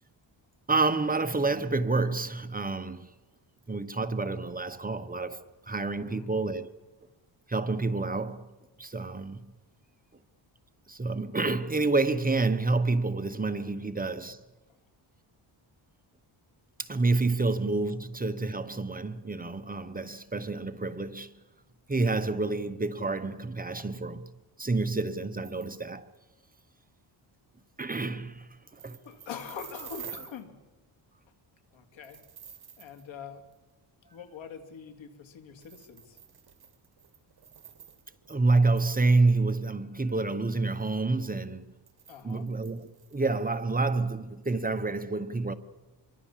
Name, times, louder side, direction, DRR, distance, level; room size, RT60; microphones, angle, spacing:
voice 1, 0.7-3.1 3.7-6.7 7.5-8.5 8.8-9.4 10.9-14.4 16.8-21.3 21.9-24.2 24.6-26.1 27.8-28.5 28.8-29.0 38.3-41.7 42.2-45.5, right 3 dB, 20° right, 1.0 m, -28 dB
voice 2, 6.0-6.3 17.9-18.0 23.7-23.9 28.7-30.6 31.7-32.2 32.8-33.4 34.1-36.2 42.1-42.5, left 7 dB, 80° left, 2.8 m, -44 dB
sound 1, 25.4-25.8 26.1-26.2 26.4-26.6 28.7-30.4 32.0-33.0 33.5-33.6 35.6-38.3 38.7-39.1 41.9-43.6, right 8 dB, 55° right, 2.2 m, -48 dB
26.0 x 23.5 x 7.4 m
cardioid pair, 125°, 45 cm